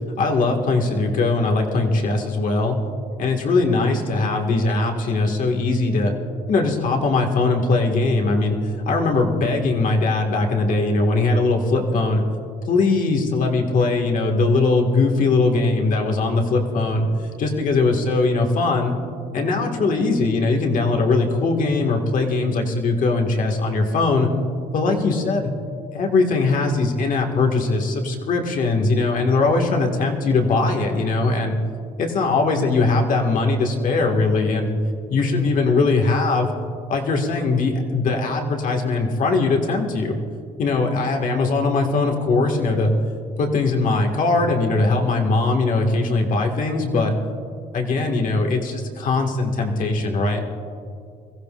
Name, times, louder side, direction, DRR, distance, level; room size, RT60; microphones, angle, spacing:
voice 1, 0.2-2.8 3.2-6.1 6.5-8.6 8.9-12.2 12.7-17.1 17.4-19.0 19.3-24.3 24.7-25.5 25.9-31.6 32.0-34.7 35.1-36.5 36.9-40.1 40.6-42.9 43.4-47.1 47.7-50.4, left 3 dB, 50° left, 2 dB, 1.9 m, -20 dB
22.5 x 15.0 x 2.5 m, 2.3 s
cardioid pair, 110°, 17 cm